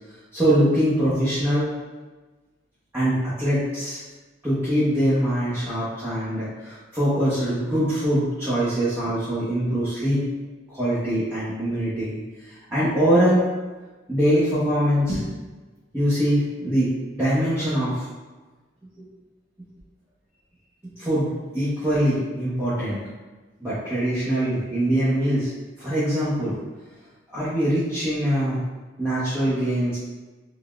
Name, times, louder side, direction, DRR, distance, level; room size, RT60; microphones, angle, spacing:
voice 1, 0.3-1.7 2.9-4.0 4.4-10.3 10.7-13.4 14.1-15.3 15.9-18.0 21.0-23.0 23.6-25.5 25.8-26.6 27.3-28.6 29.0-30.0, equal, 10° right, -13 dB, 0.9 m, -23 dB
3.9 x 3.6 x 2.3 m, 1.2 s
head